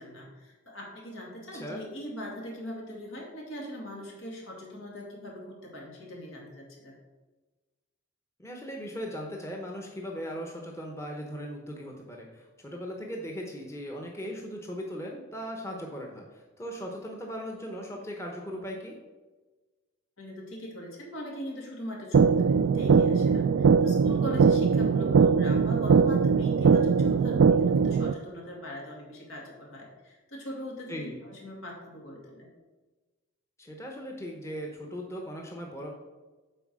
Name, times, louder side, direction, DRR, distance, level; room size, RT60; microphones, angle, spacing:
voice 1, 0.0-6.9 20.2-32.5, equal, 75° left, -2 dB, 2.3 m, -41 dB
voice 2, 1.5-1.8 8.4-19.0 30.9-31.2 33.6-35.9, equal, 15° left, 0 dB, 0.9 m, -38 dB
sound 1, 22.1-28.1, right 5 dB, 80° right, 0.3 m, -21 dB
7.8 x 4.8 x 6.1 m, 1.2 s
head